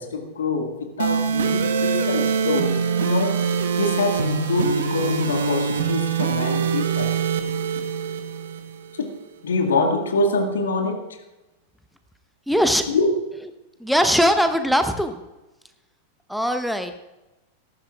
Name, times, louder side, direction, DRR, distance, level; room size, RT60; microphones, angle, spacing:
voice 1, 0.0-7.1 9.0-9.1 9.4-11.0 12.9-13.1, left 3 dB, 65° left, 4 dB, 1.8 m, -25 dB
sound 1, 1.0-9.0, right 6 dB, 60° right, 1.1 m, -24 dB
voice 2, 12.5-12.8 13.8-15.2 16.3-17.0, equal, ahead, 7 dB, 0.8 m, -20 dB
18.0 x 14.5 x 2.4 m, 1.0 s
figure-of-eight pair, 90°, 0 cm